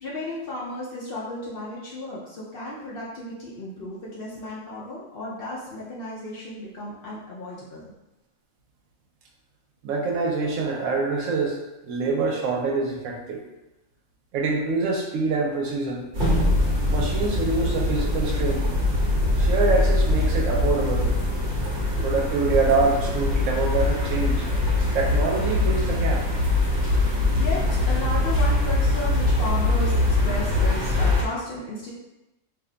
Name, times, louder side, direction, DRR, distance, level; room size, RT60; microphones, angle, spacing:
voice 1, 0.0-7.9 27.3-31.9, left 2 dB, 60° left, -6 dB, 0.6 m, -34 dB
voice 2, 9.8-11.6 11.8-13.4 14.3-16.0 16.9-18.7 19.3-21.1 22.0-24.5 24.9-26.3, right 3 dB, 75° right, 1 dB, 0.9 m, -25 dB
sound 1, 16.1-31.2, left 2 dB, 45° right, 0.8 m, -22 dB
2.6 x 2.1 x 3.7 m, 0.97 s
omnidirectional pair, 1.4 m